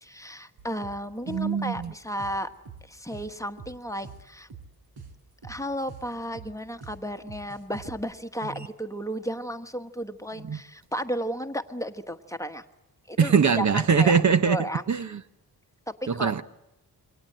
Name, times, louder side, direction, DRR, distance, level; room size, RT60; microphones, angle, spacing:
voice 1, 0.0-2.5 2.8-4.5 5.4-12.6 13.1-14.8 15.9-16.3, equal, 10° left, 8 dB, 1.2 m, -34 dB
sound 1, 0.6-8.0, right 5 dB, 90° right, 4.9 m, -45 dB
voice 2, 1.3-1.9 8.6-8.7 10.4-10.6 13.2-15.2 16.1-16.4, right 6 dB, 50° right, 12 dB, 1.0 m, -22 dB
27.5 x 24.0 x 7.7 m, 0.93 s
wide cardioid pair, 145°, 37 cm